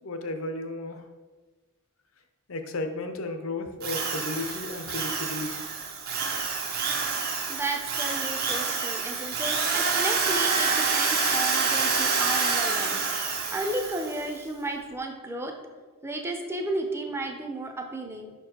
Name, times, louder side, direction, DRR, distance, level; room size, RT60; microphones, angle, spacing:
voice 1, 0.0-1.0 2.5-5.7, left 2 dB, 65° left, 7 dB, 0.7 m, -34 dB
Drill, 3.8-14.2, right 4 dB, 45° right, 0.8 m, -27 dB
voice 2, 7.2-15.6 16.0-18.3, right 2 dB, 10° right, 3 dB, 0.6 m, -33 dB
5.6 x 4.6 x 4.3 m, 1.3 s
head